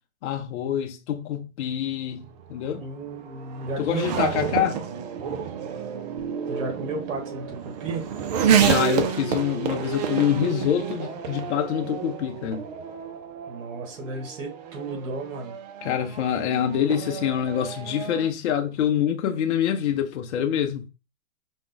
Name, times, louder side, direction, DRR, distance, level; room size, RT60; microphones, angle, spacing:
voice 1, 0.2-2.9 3.8-4.7 8.6-12.6 15.8-20.9, left 10 dB, 55° left, 0.8 m, -26 dB
Race car auto racing / Accelerating revving vroom, 2.0-18.3, right 8 dB, 30° right, 0.5 m, -29 dB
voice 2, 2.8-4.7 6.5-8.1 13.5-15.5, right 3 dB, 60° right, 1.9 m, -33 dB
5.2 x 2.3 x 3.8 m
hypercardioid pair, 135°, 41 cm